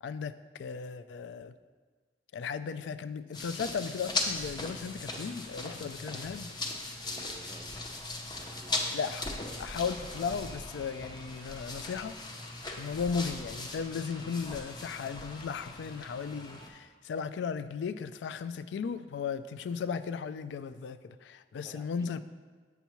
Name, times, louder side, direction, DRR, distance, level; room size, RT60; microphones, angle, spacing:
voice 1, 0.0-1.5 2.3-6.5 8.9-9.3 9.6-12.2 12.8-22.2, left 6 dB, 70° left, 13 dB, 0.3 m, -36 dB
sound 1, 3.3-16.7, left 2 dB, 25° left, 0.6 m, -39 dB
voice 2, 7.0-8.9 21.6-22.1, right 1 dB, 20° right, 4 dB, 0.5 m, -53 dB
8.0 x 6.9 x 3.0 m, 1.4 s
head